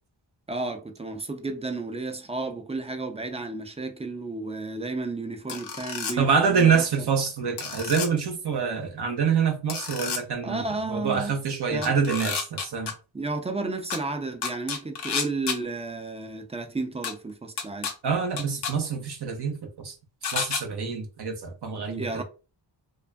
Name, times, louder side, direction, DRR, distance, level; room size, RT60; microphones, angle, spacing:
voice 1, 0.5-6.8 10.4-11.4 11.7-11.9 13.1-17.9 22.0-22.2, right 3 dB, 15° right, 0.4 m, -32 dB
sound 1, 5.5-6.1 7.6-8.1 9.7-10.2 11.8-12.9 13.9-14.0 14.4-15.6 17.0-17.1 17.6-17.9 18.4-18.7 20.2-20.6, left 6 dB, 60° left, 0.6 m, -30 dB
voice 2, 6.2-12.9 18.0-19.9 20.3-22.2, right 6 dB, 55° right, 0.7 m, -26 dB
2.4 x 2.3 x 2.2 m
cardioid pair, 50°, 46 cm